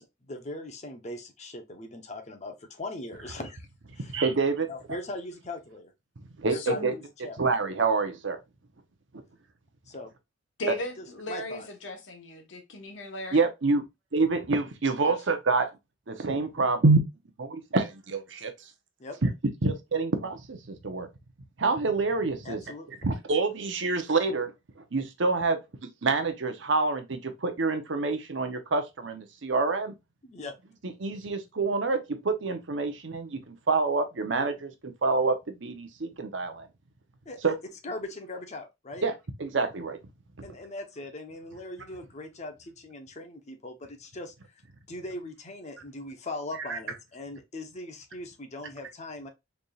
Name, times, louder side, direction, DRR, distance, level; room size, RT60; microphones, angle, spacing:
voice 1, 0.0-3.7 3.9-4.2 4.7-5.9 6.5-7.4 9.9-10.1 11.3-11.7 15.0-15.2 19.0-19.2 22.4-22.9 30.2-30.5 37.2-37.5 37.8-39.0 40.4-44.3 44.9-49.3, left 2 dB, 35° left, 0.8 m, -40 dB
voice 2, 4.1-4.7 6.4-6.9 7.4-8.4 13.3-13.8 14.1-15.7 16.1-17.0 17.4-18.5 19.2-19.3 19.6-21.1 21.6-22.6 23.0-24.5 24.9-29.9 30.8-36.7 37.4-37.5 39.0-39.1 39.4-40.0 46.7-46.8, right 3 dB, 70° right, 0.8 m, -27 dB
voice 3, 6.5-7.0 10.6-13.5, equal, 75° left, 1.1 m, -35 dB
4.1 x 3.4 x 2.4 m
head